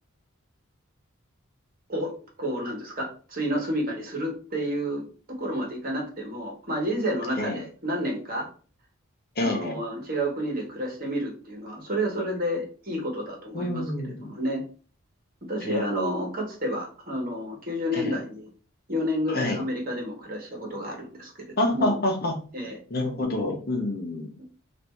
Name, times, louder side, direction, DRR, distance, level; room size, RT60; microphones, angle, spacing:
voice 1, 2.4-8.5 9.4-14.6 15.5-18.5 18.9-21.3 21.7-22.0 22.5-22.8, equal, 40° right, 0 dB, 1.2 m, -30 dB
voice 2, 9.4-9.8 13.5-14.3 15.6-15.9 17.9-18.2 19.3-19.6 21.6-22.3 22.9-24.3, left 1 dB, 45° left, 2 dB, 0.9 m, -27 dB
3.3 x 2.6 x 4.4 m, 0.39 s
head